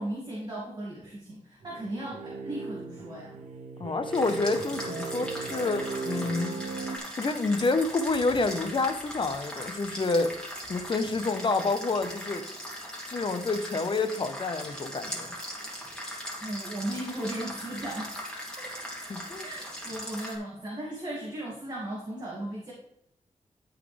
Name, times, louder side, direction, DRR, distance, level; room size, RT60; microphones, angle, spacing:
voice 1, 0.0-3.4 16.4-18.1 19.4-22.7, right 1 dB, 35° right, -5 dB, 2.4 m, -36 dB
sound 1, 1.6-7.0, right 4 dB, 85° right, 1.0 m, -37 dB
voice 2, 3.8-6.5 7.2-10.3 10.7-12.4 13.1-15.3 19.1-19.5, left 3 dB, 40° left, 8 dB, 1.0 m, -28 dB
sound 2, 4.1-20.4, equal, 5° left, 2.5 m, -39 dB
13.5 x 4.9 x 3.4 m, 0.77 s
wide cardioid pair, 95°, 12 cm